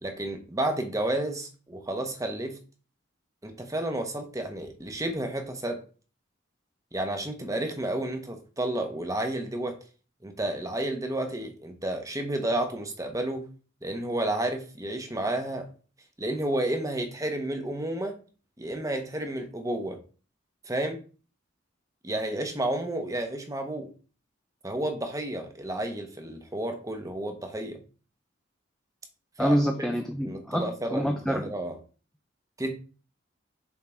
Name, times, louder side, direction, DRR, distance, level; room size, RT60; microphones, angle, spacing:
voice 1, 0.0-2.6 3.4-5.8 6.9-9.8 10.2-13.5 13.8-15.7 16.2-18.2 18.6-20.0 20.6-21.0 22.0-23.9 24.6-27.8 29.4-29.9 30.2-31.8 32.6-32.7, right 1 dB, 15° right, 5 dB, 1.0 m, -31 dB
voice 2, 29.4-31.5, equal, ahead, 2 dB, 0.6 m, -27 dB
7.3 x 3.8 x 4.5 m, 0.37 s
head